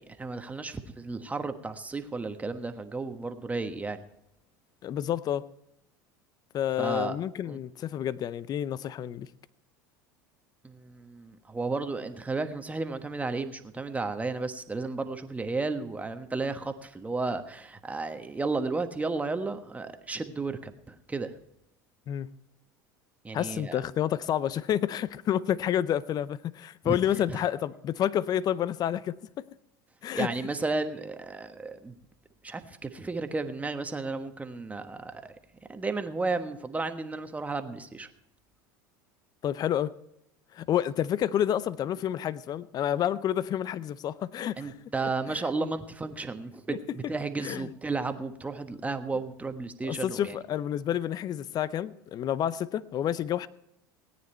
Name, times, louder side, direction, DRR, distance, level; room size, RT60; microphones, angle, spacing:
voice 1, 0.0-4.0 6.8-7.2 7.5-7.6 10.6-21.3 23.2-23.8 26.8-27.0 27.3-27.4 30.1-31.9 32.4-35.3 35.7-38.1 44.6-50.4, right 3 dB, 15° right, 7 dB, 1.3 m, -33 dB
voice 2, 4.8-5.4 6.5-9.3 22.1-22.3 23.3-29.4 30.0-30.3 39.4-39.9 40.5-44.7 46.7-46.8 47.4-47.7 49.8-53.5, left 10 dB, 40° left, 18 dB, 0.6 m, -29 dB
17.5 x 9.6 x 4.4 m, 0.80 s
hypercardioid pair, 85°, 10 cm